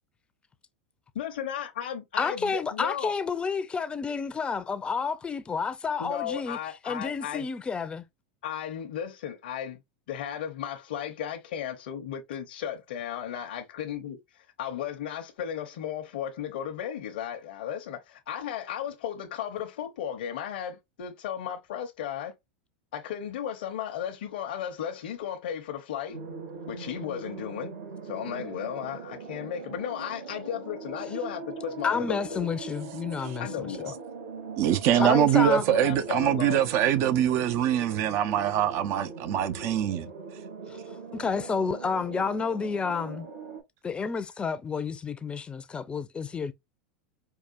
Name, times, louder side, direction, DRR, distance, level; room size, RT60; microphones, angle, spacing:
voice 1, 1.1-3.1 6.0-7.5 8.4-9.8 10.1-22.3 22.9-26.2 26.7-27.7 28.0-32.5 33.4-34.0 34.9-36.7, left 9 dB, 70° left, 0.8 m, -35 dB
voice 2, 2.2-6.6 6.8-8.0 31.8-33.7 35.0-35.7 40.7-40.8 41.1-43.3 43.8-46.5, left 5 dB, 20° left, 0.6 m, -30 dB
sound 1, 26.1-43.6, right 4 dB, 80° right, 2.8 m, -41 dB
voice 3, 34.6-40.1, right 10 dB, 50° right, 0.7 m, -24 dB
4.8 x 2.4 x 2.5 m
hypercardioid pair, 100°, 5 cm